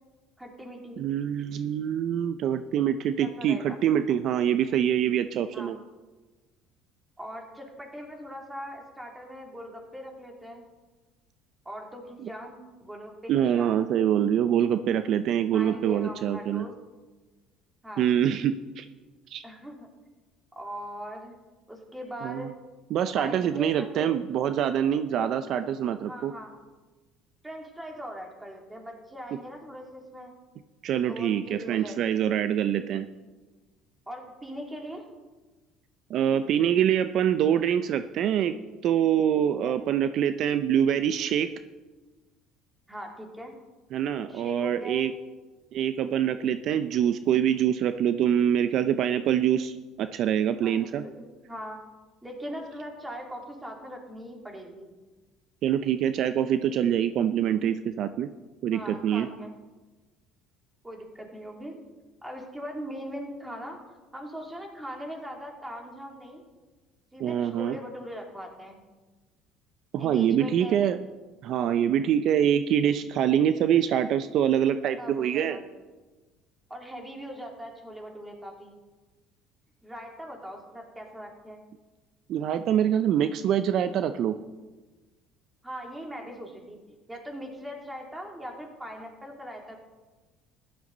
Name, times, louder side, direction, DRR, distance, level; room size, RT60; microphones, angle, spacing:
voice 1, 0.4-1.1 3.2-3.8 5.5-5.7 7.2-10.6 11.6-13.8 15.5-16.7 17.8-18.1 19.4-19.9 20.5-21.4 21.7-22.5 23.1-24.1 25.2-25.3 26.1-26.5 27.4-30.3 31.1-32.1 34.1-35.0 39.6-40.0 42.9-43.5 44.3-45.0 50.6-51.8 52.2-54.9 58.7-59.5 60.8-61.8 62.2-63.8 64.1-66.4 67.1-68.8 70.0-70.8 75.0-75.6 76.7-78.8 79.8-81.6 85.6-89.8, equal, 10° right, 1 dB, 2.8 m, -40 dB
voice 2, 1.0-5.8 13.3-16.7 18.0-18.8 19.3-19.4 22.2-22.5 22.9-26.3 30.8-33.1 36.1-38.6 38.8-41.5 43.9-45.1 45.7-51.0 55.6-58.3 58.6-59.3 67.2-67.8 69.9-71.0 71.4-75.6 82.3-84.4, right 9 dB, 60° right, 11 dB, 0.5 m, -25 dB
15.0 x 11.5 x 4.0 m, 1.2 s
supercardioid pair, 105°, 0 cm